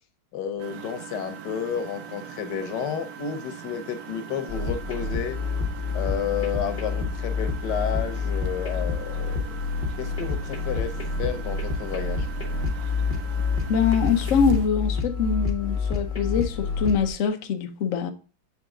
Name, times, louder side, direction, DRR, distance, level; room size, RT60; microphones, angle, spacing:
voice 1, 0.3-5.4 5.9-9.6 10.0-10.9 11.2-12.3, left 8 dB, 65° left, 1.3 m, -31 dB
Engine, 0.6-14.7, right 8 dB, 75° right, 0.9 m, -41 dB
sound 1, 4.5-17.1, left 4 dB, 30° left, 0.7 m, -28 dB
voice 2, 13.7-18.1, left 6 dB, 85° left, 0.7 m, -24 dB
7.1 x 3.7 x 3.6 m
omnidirectional pair, 2.2 m